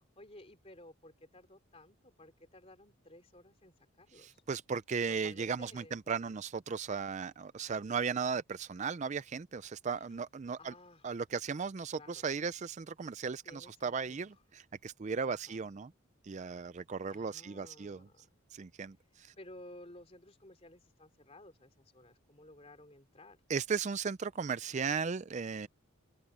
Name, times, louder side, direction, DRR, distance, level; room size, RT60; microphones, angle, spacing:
voice 1, 0.0-4.4 5.0-6.0 10.6-11.1 11.9-12.3 13.4-14.3 15.2-15.7 17.1-18.2 19.4-23.4, left 1 dB, 30° left, 3.7 m, -55 dB
voice 2, 4.2-10.7 11.0-15.9 16.2-18.1 18.5-19.3 23.5-25.7, right 5 dB, 35° right, 0.4 m, -36 dB
open air
head